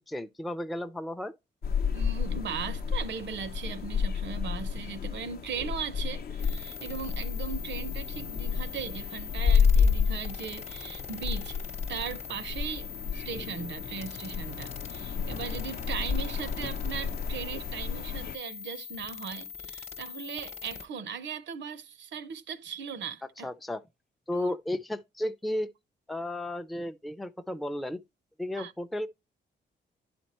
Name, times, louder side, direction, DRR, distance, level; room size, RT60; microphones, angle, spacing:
voice 1, 0.1-1.3 23.4-23.8 24.3-25.7 26.1-28.0 28.4-29.1, left 1 dB, ahead, 0.4 m, -33 dB
sound 1, 1.6-18.3, left 6 dB, 55° left, 0.6 m, -30 dB
voice 2, 1.9-11.6 11.9-23.5 24.3-24.6 28.6-28.7, right 6 dB, 70° right, 0.6 m, -38 dB
sound 2, 6.4-20.9, left 7 dB, 35° left, 0.9 m, -43 dB
11.0 x 4.4 x 2.9 m
cardioid pair, 90°, 19 cm